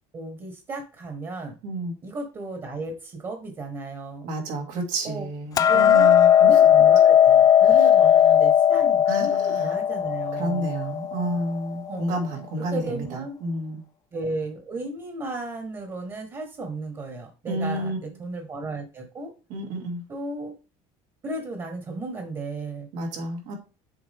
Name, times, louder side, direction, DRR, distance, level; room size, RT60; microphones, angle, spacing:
voice 1, 0.1-1.5 2.0-4.3 5.0-5.3 5.7-10.7 11.9-12.2 12.7-13.4 14.1-19.3 20.1-20.5 21.2-22.9, right 2 dB, 30° right, 4 dB, 1.5 m, -34 dB
voice 2, 1.6-1.9 4.2-6.5 9.1-9.7 10.3-13.0 13.4-13.8 17.5-18.0 19.5-20.0 22.9-23.5, right 1 dB, 75° right, 2 dB, 2.4 m, -30 dB
Hammer, 5.6-11.8, left 9 dB, 30° left, 0.4 m, -17 dB
7.1 x 4.6 x 3.6 m, 0.34 s
cardioid pair, 140°, 13 cm